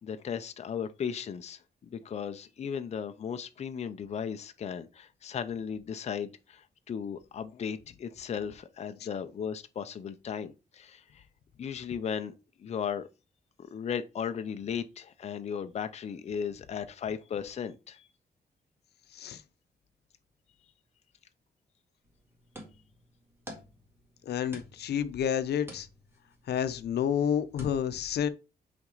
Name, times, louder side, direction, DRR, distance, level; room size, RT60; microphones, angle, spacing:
voice 1, 0.0-11.2 11.6-12.3 12.6-13.1 13.7-18.1, left 7 dB, 40° left, 0.6 m, -36 dB
sound 1, 22.0-27.7, equal, 15° right, 1.8 m, -51 dB
voice 2, 24.2-25.9 26.5-28.3, left 8 dB, 85° left, 0.7 m, -29 dB
5.9 x 4.3 x 3.9 m
wide cardioid pair, 170°, 16 cm